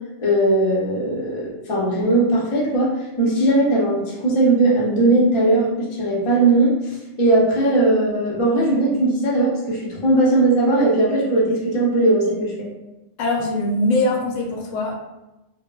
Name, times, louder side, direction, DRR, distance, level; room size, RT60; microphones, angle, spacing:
voice 1, 0.2-2.9 3.2-12.7, right 2 dB, 40° left, -4 dB, 0.5 m, -19 dB
voice 2, 13.2-15.0, left 1 dB, 85° left, 0 dB, 1.0 m, -22 dB
3.0 x 2.0 x 2.2 m, 0.98 s
omnidirectional pair, 1.3 m